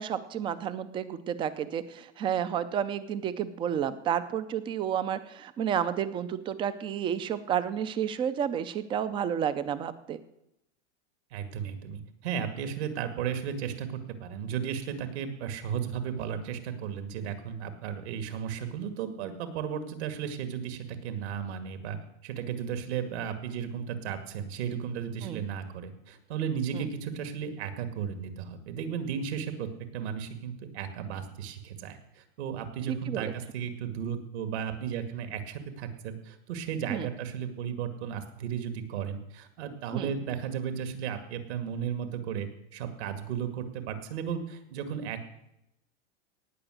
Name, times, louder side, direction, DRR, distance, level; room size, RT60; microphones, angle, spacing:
voice 1, 0.0-10.2 25.2-25.4 26.7-26.9 33.1-33.3 36.9-37.1 39.9-40.1, right 9 dB, 15° right, 14 dB, 0.4 m, -31 dB
voice 2, 11.3-22.0 22.2-45.2, right 8 dB, 65° right, 9 dB, 2.2 m, -35 dB
18.0 x 6.0 x 7.9 m, 0.84 s
supercardioid pair, 155°, 36 cm